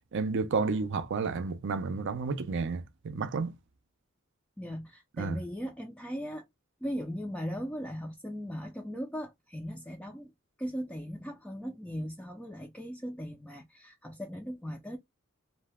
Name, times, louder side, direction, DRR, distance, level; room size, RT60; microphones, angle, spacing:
voice 1, 0.1-3.5 5.2-5.4, right 4 dB, 60° right, 0.5 m, -31 dB
voice 2, 4.6-6.4 6.8-10.3 10.6-15.0, equal, 5° left, 0.4 m, -38 dB
2.7 x 2.2 x 3.3 m
head